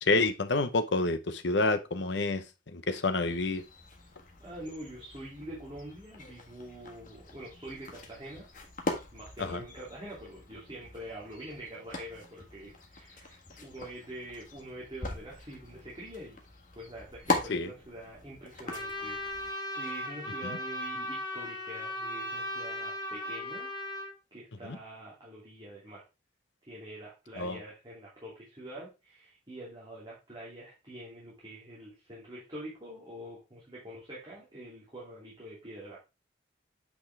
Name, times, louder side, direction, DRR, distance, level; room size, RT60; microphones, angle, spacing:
voice 1, 0.0-2.4 2.7-3.6 9.4-9.6 17.5-17.7 20.4-20.6 24.6-24.8 27.4-27.6, left 3 dB, 70° left, 0.9 m, -28 dB
sound 1, 3.2-19.5, left 2 dB, 45° left, 1.6 m, -41 dB
voice 2, 4.4-8.5 9.1-16.4 16.7-23.7 24.3-26.0 26.7-36.0, right 1 dB, 25° right, 2.7 m, -45 dB
Trumpet, 18.7-24.1, left 1 dB, 25° left, 1.8 m, -37 dB
8.4 x 5.5 x 3.4 m
head